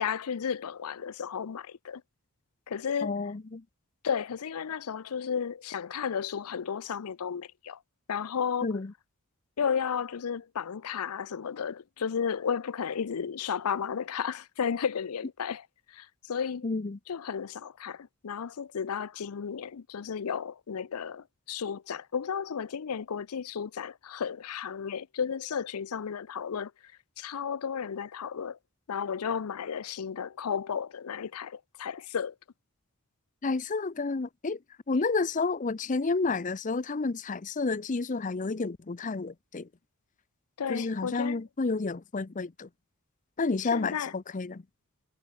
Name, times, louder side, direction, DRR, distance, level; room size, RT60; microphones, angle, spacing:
voice 1, 0.0-2.0 2.7-3.2 4.0-7.8 8.1-8.7 9.6-16.7 17.1-26.7 27.2-28.6 28.9-32.3 40.6-41.4 43.7-44.1, left 7 dB, 80° left, 0.5 m, -33 dB
voice 2, 3.0-3.6 8.6-8.9 16.6-17.0 33.4-34.6 34.9-39.7 40.7-42.7 43.4-44.6, left 3 dB, 35° left, 0.6 m, -30 dB
head